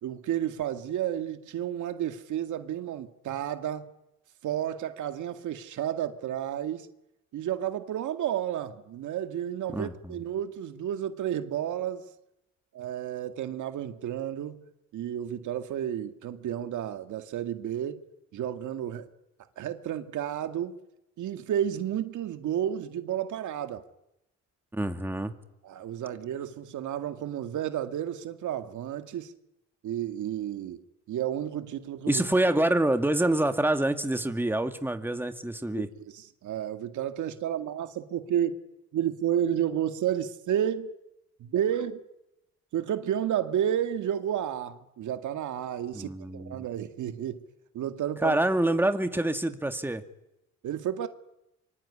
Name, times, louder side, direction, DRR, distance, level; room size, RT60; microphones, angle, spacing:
voice 1, 0.0-3.9 4.4-6.9 7.3-12.0 12.7-14.7 14.9-18.0 18.3-19.1 19.6-20.7 21.2-23.8 25.6-29.3 29.8-32.2 35.8-38.6 38.9-40.9 41.4-42.1 42.7-47.4 47.7-48.4 50.6-51.1, right 10 dB, 75° right, 2.1 m, -31 dB
voice 2, 9.7-10.2 24.7-25.3 32.1-35.9 45.9-46.6 48.2-50.0, right 1 dB, 5° right, 2.4 m, -26 dB
25.0 x 24.5 x 9.9 m
cardioid pair, 90°, 30 cm